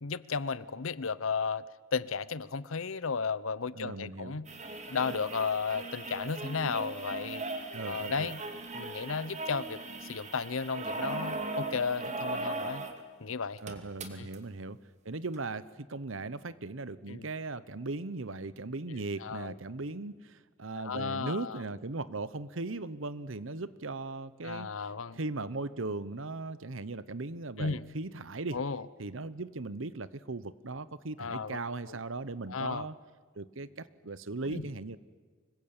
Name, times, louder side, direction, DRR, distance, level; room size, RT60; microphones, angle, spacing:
voice 1, 0.0-4.5 4.9-7.4 7.8-8.4 8.7-12.8 13.2-13.6 14.2-14.3 17.1-17.3 18.9-19.5 20.8-21.6 24.4-25.2 27.6-27.8 28.5-28.9 31.2-31.6 31.9-32.0 32.5-32.9 34.4-34.7, left 5 dB, 85° left, 18 dB, 0.8 m, -34 dB
voice 2, 3.8-4.4 7.7-8.3 13.6-14.8 15.0-24.7 25.1-28.6 29.0-32.9 33.3-35.0, right 3 dB, 70° right, 16 dB, 1.0 m, -38 dB
sound 1, 4.5-13.0 13.3-13.4 13.6-14.4 15.3-15.4, right 2 dB, 35° right, 2.4 m, -38 dB
25.5 x 22.0 x 8.9 m, 1.5 s
head